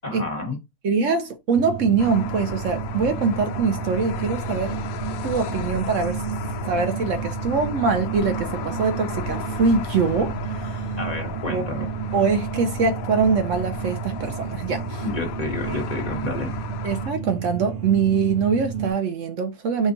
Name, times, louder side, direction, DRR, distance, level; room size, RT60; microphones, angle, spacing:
voice 1, 0.0-0.6 11.0-11.8 15.0-16.5, left 2 dB, 30° left, 1.2 m, -30 dB
voice 2, 0.8-4.8 5.2-6.2 6.6-10.8 11.5-11.8 12.1-15.0 15.7-15.8 16.8-19.9, right 5 dB, 65° right, 1.0 m, -23 dB
sound 1, 1.5-18.9, right 8 dB, 50° right, 0.5 m, -32 dB
sound 2, 2.0-17.1, left 7 dB, 80° left, 1.0 m, -35 dB
5.2 x 2.4 x 3.8 m
omnidirectional pair, 1.5 m